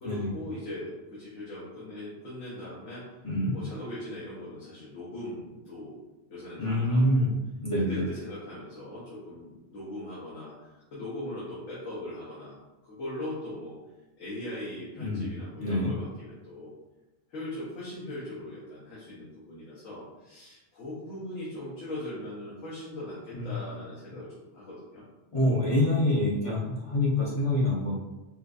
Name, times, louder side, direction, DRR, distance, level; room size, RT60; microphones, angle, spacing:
voice 1, 0.0-3.1 3.5-6.0 6.3-7.3 7.9-12.5 12.8-13.8 14.2-16.7 17.3-25.0, left 1 dB, 80° left, -8 dB, 1.3 m, -40 dB
voice 2, 6.6-7.3 7.6-8.1 15.0-15.3 15.6-15.9 23.3-23.5 25.3-27.9, left 1 dB, 40° left, -7 dB, 0.5 m, -26 dB
4.4 x 2.3 x 2.5 m, 1.0 s
omnidirectional pair, 1.4 m